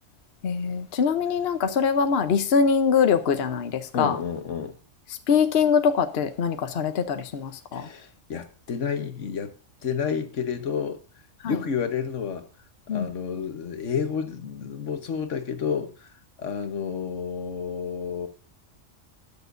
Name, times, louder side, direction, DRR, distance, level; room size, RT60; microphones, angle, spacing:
voice 1, 0.4-4.2 5.1-7.9 11.4-11.6 12.9-13.1, left 6 dB, 60° left, 1.0 m, -23 dB
voice 2, 3.9-4.7 7.7-9.5 9.8-11.0 11.4-12.5 12.9-16.1 16.4-18.3, left 6 dB, 75° left, 1.4 m, -30 dB
20.5 x 6.9 x 2.6 m
omnidirectional pair, 1.3 m